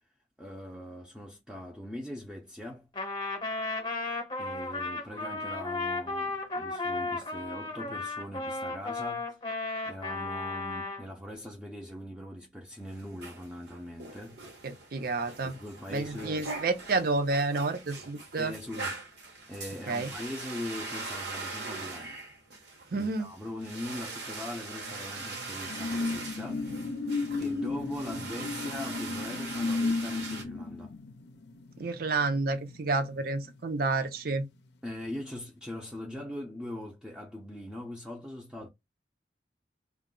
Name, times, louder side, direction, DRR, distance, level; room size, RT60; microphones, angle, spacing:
voice 1, 0.4-2.9 4.4-9.3 9.9-14.5 15.4-16.5 18.4-19.0 19.5-22.2 22.9-26.7 27.4-30.9 34.8-38.7, left 1 dB, 5° right, 0.5 m, -41 dB
Trumpet, 2.9-11.1, left 3 dB, 25° left, 0.8 m, -34 dB
sound 1, 12.8-30.4, right 3 dB, 75° right, 1.1 m, -42 dB
voice 2, 14.6-15.5 15.9-18.5 19.9-20.1 22.9-23.3 31.8-34.4, right 3 dB, 55° right, 0.6 m, -30 dB
sound 2, 24.8-33.8 34.2-34.4, left 3 dB, 70° left, 0.5 m, -34 dB
2.2 x 2.0 x 3.7 m
head